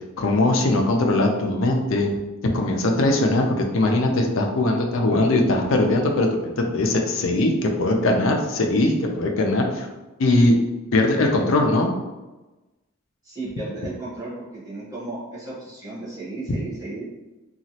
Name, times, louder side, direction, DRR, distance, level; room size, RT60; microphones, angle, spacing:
voice 1, 0.2-2.1 2.5-9.9 10.2-10.5 10.9-11.9, left 2 dB, 65° left, 2 dB, 0.5 m, -20 dB
voice 2, 13.2-17.1, right 2 dB, 15° right, -10 dB, 0.9 m, -34 dB
2.9 x 2.4 x 2.7 m, 1.1 s
head